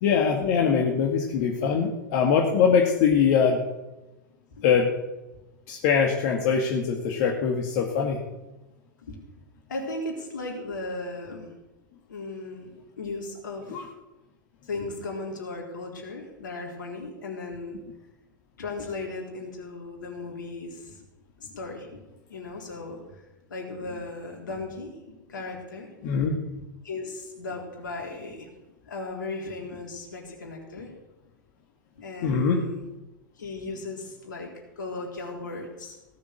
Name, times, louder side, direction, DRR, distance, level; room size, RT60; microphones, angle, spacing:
voice 1, 0.0-3.6 4.6-4.9 5.7-8.2 13.7-13.8 26.0-26.4 32.2-32.6, left 6 dB, 50° left, 1 dB, 2.0 m, -22 dB
voice 2, 9.7-11.5 12.1-12.7 13.0-13.8 14.7-17.8 18.6-21.1 21.4-22.0 22.3-23.2 23.5-25.9 26.3-26.4 26.8-28.5 28.8-30.9 32.0-32.9 33.4-34.5 34.8-36.0, left 3 dB, 70° left, 1 dB, 4.1 m, -36 dB
17.5 x 7.1 x 8.3 m, 1.0 s
figure-of-eight pair, 95°, 11 cm